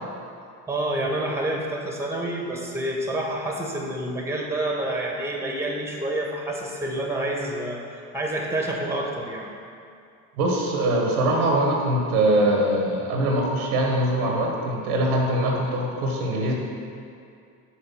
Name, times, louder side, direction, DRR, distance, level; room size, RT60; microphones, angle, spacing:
voice 1, 0.7-9.5, right 1 dB, 5° right, -1 dB, 1.5 m, -28 dB
voice 2, 10.4-16.5, right 1 dB, 85° right, 0 dB, 1.4 m, -22 dB
5.9 x 4.7 x 6.2 m, 2.4 s
hypercardioid pair, 75°, 44 cm